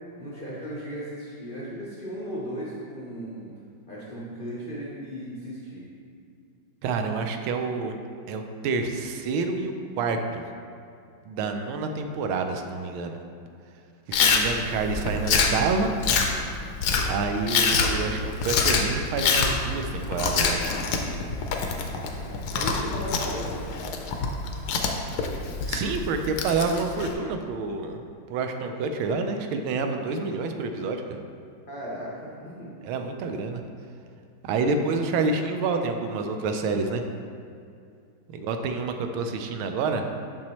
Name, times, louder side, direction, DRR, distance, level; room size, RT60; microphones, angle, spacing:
voice 1, 0.0-3.6 3.9-5.9 18.0-18.2 22.2-23.8 31.7-32.8, equal, 55° left, -6 dB, 0.6 m, -36 dB
voice 2, 6.8-8.0 8.3-10.4 11.3-13.2 14.1-15.9 17.1-20.8 25.7-28.0 28.3-31.0 32.8-33.6 34.4-37.0 38.3-40.1, right 4 dB, 90° right, 5 dB, 1.4 m, -28 dB
Chewing mastication, 14.1-27.1, left 5 dB, 70° left, 1.0 m, -26 dB
7.2 x 6.2 x 3.0 m, 2.4 s
omnidirectional pair, 2.2 m